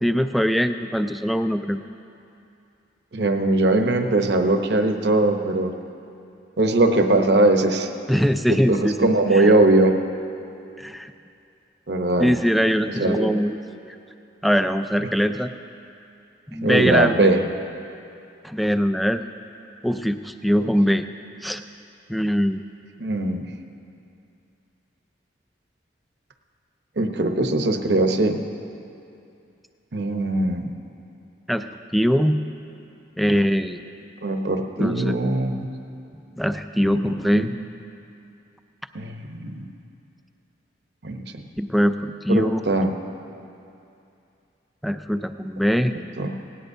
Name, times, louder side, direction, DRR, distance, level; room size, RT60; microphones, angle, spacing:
voice 1, 0.0-1.8 8.1-9.5 10.8-11.1 12.2-13.6 14.4-15.5 16.5-17.3 18.4-19.2 19.8-21.1 21.4-21.6 22.1-22.6 31.5-32.4 33.2-33.8 34.8-35.2 36.4-37.5 41.6-42.6 44.8-46.0, equal, ahead, 9 dB, 0.3 m, -22 dB
voice 2, 3.1-5.7 6.6-7.9 8.5-10.0 11.9-12.4 13.0-13.3 16.6-17.4 20.6-20.7 23.0-23.4 27.0-28.4 29.9-30.7 34.2-35.7 36.8-37.0 37.4-37.5 38.9-39.7 41.0-41.4 42.3-42.9 46.2-46.3, right 2 dB, 65° right, 5 dB, 0.9 m, -20 dB
18.5 x 17.5 x 2.7 m, 2.7 s
head